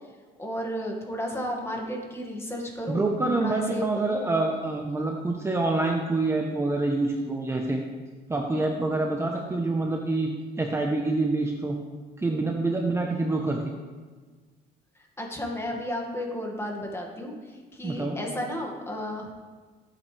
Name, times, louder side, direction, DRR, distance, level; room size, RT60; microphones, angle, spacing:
voice 1, 0.4-3.1 3.3-4.3 15.2-19.4, equal, 15° left, 0 dB, 2.1 m, -33 dB
voice 2, 2.9-7.8 8.3-11.8 12.2-13.7 17.8-18.2, right 2 dB, 15° right, 1 dB, 1.0 m, -26 dB
14.5 x 8.8 x 3.4 m, 1.4 s
cardioid pair, 110°, 17 cm